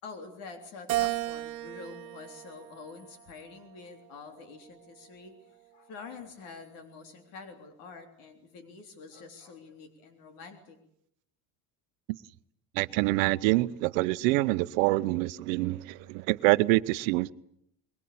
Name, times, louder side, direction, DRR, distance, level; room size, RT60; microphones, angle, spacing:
voice 1, 0.0-10.8, left 4 dB, 60° left, 3.5 m, -47 dB
Keyboard (musical), 0.9-3.4 4.0-5.2, right 17 dB, 50° right, 1.6 m, -35 dB
voice 2, 12.8-17.3, right 20 dB, 85° right, 0.9 m, -26 dB
22.5 x 22.0 x 8.7 m
cardioid pair, 170°, 39 cm